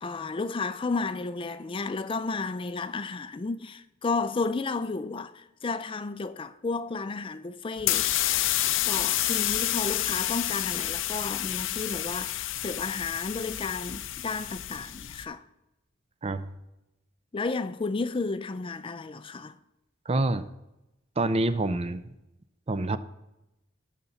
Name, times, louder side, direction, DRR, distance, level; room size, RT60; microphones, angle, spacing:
voice 1, 0.0-8.1 8.8-15.4 17.3-19.5, left 3 dB, 25° left, 0.4 m, -32 dB
sound 1, 7.8-15.2, left 13 dB, 75° left, 0.6 m, -29 dB
voice 2, 20.1-20.4 21.2-22.0 22.7-23.0, right 2 dB, 30° right, 0.5 m, -26 dB
18.0 x 6.7 x 4.1 m
head